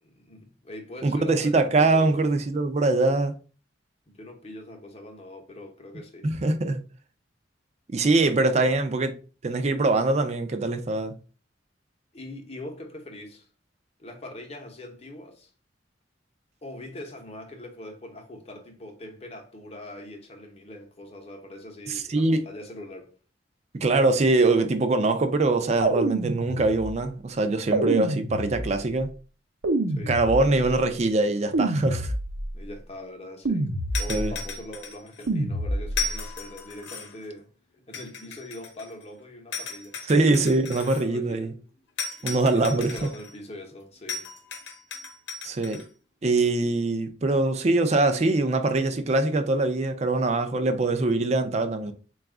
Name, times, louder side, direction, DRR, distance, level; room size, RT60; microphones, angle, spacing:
voice 1, 0.0-2.2 4.1-6.3 8.2-8.8 12.1-13.5 14.0-15.5 16.6-23.1 29.9-30.6 32.5-33.7 34.0-37.5 37.9-40.0 41.0-41.5 42.2-44.3, left 1 dB, 35° left, 0.8 m, -42 dB
voice 2, 1.0-3.3 6.2-6.8 7.9-9.1 9.4-11.1 21.9-22.4 23.8-29.1 30.1-32.1 34.1-34.3 40.1-41.5 42.2-42.9 45.4-45.8 46.2-51.9, right 2 dB, 35° right, 0.4 m, -23 dB
sound 1, 25.8-27.0 27.7-28.9 29.6-30.8 31.5-32.6 33.5-34.4 35.3-36.2, right 2 dB, 80° right, 0.6 m, -27 dB
sound 2, 33.9-35.3 35.9-37.3 37.9-39.0 39.5-41.0 42.0-43.3 44.1-45.8, left 4 dB, 70° left, 0.8 m, -36 dB
4.0 x 2.3 x 3.5 m
head